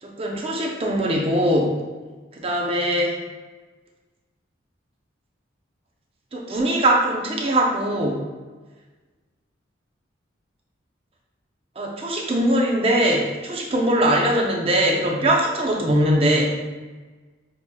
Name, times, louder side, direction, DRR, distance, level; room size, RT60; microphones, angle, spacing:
voice 1, 0.0-1.8 2.3-3.2 6.3-8.2 11.8-16.5, right 1 dB, 30° right, -1 dB, 0.5 m, -21 dB
6.4 x 2.8 x 2.2 m, 1.3 s
head